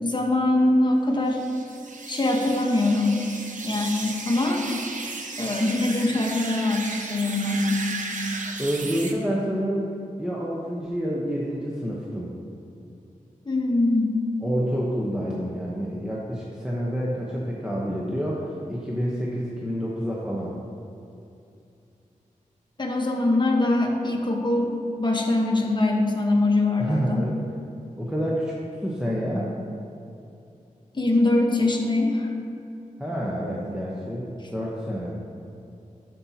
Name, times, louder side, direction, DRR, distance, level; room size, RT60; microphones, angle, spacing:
voice 1, 0.0-1.4 2.1-3.2 3.6-4.6 5.4-7.9 13.4-14.2 22.8-24.7 25.0-27.2 30.9-32.3, left 2 dB, 35° left, 0 dB, 1.1 m, -23 dB
sound 1, 1.3-9.1, right 3 dB, 65° right, 0.8 m, -35 dB
voice 2, 8.6-9.9 10.2-12.3 14.4-20.5 26.8-27.4 28.0-28.5 28.8-29.6 33.0-35.1, equal, 5° right, -5 dB, 0.9 m, -28 dB
13.0 x 5.4 x 2.9 m, 2.7 s
wide cardioid pair, 70°, 14 cm